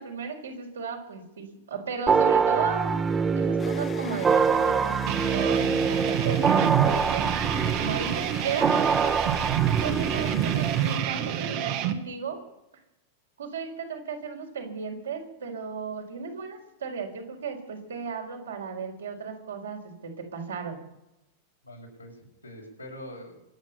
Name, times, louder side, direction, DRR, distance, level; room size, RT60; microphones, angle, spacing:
voice 1, 0.0-3.0 3.4-7.3 7.8-9.2 9.8-12.4 13.4-20.8, right 5 dB, 70° right, 2 dB, 4.4 m, -35 dB
sound 1, 2.1-10.8, right 5 dB, 20° right, 1.0 m, -25 dB
sound 2, 2.8-11.5, left 6 dB, 20° left, 1.5 m, -42 dB
sound 3, 5.1-11.9, right 11 dB, 45° right, 1.6 m, -27 dB
voice 2, 7.3-7.7 21.6-23.4, left 1 dB, 85° left, 0 dB, 5.8 m, -44 dB
26.0 x 9.3 x 5.7 m, 0.88 s
figure-of-eight pair, 90°, 0 cm